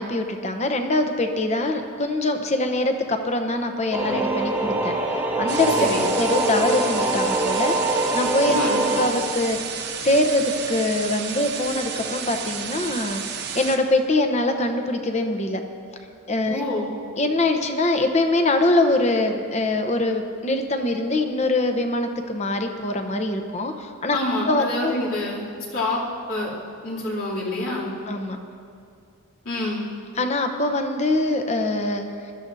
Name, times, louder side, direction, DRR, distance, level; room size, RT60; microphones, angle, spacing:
voice 1, 0.0-4.9 5.4-5.7 6.1-8.6 9.0-9.6 10.0-13.2 13.5-15.6 16.3-16.6 17.2-24.2 24.5-24.9 28.1-28.4 30.2-32.0, left 2 dB, 30° left, 6 dB, 0.8 m, -23 dB
sound 1, 3.9-9.1, right 2 dB, 10° right, 1.2 m, -23 dB
sound 2, 5.5-13.8, right 7 dB, 50° right, 0.9 m, -32 dB
voice 2, 5.8-6.1 8.5-8.8 16.5-16.9 24.1-25.4 25.7-26.0 26.3-26.5 26.8-27.9 29.4-29.8, left 2 dB, 70° left, -6 dB, 2.9 m, -26 dB
20.5 x 13.0 x 2.7 m, 2.4 s
head